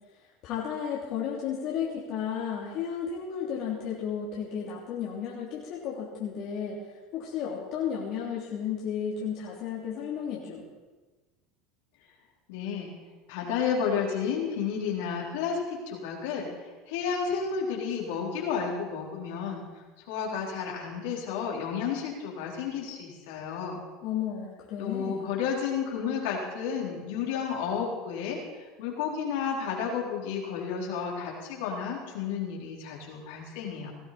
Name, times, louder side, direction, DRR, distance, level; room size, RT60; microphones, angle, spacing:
voice 1, 0.4-10.6 24.0-25.3, left 8 dB, 60° left, -4 dB, 3.1 m, -33 dB
voice 2, 12.5-12.9 13.3-19.6 20.1-23.8 24.8-33.9, left 6 dB, 75° left, -2 dB, 4.1 m, -32 dB
18.5 x 14.5 x 4.3 m, 1.3 s
hypercardioid pair, 90°, 0 cm